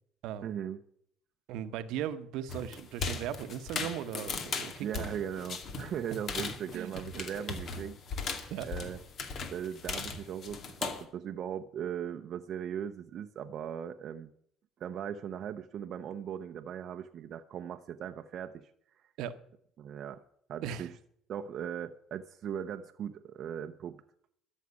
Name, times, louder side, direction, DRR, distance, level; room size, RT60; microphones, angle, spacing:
voice 1, 0.4-0.8 4.8-8.0 8.6-9.0 9.5-14.3 14.8-18.7 19.0-19.1 19.8-20.2 20.5-21.0 21.3-24.0, right 9 dB, 55° right, 0.7 m, -39 dB
voice 2, 1.5-4.9 6.7-7.4 8.5-8.7 19.2-19.4 20.6-20.9, right 10 dB, 75° right, 1.0 m, -38 dB
sound 1, 2.5-11.0, left 5 dB, 50° left, 2.3 m, -38 dB
13.0 x 6.5 x 9.6 m
supercardioid pair, 95°, 0 cm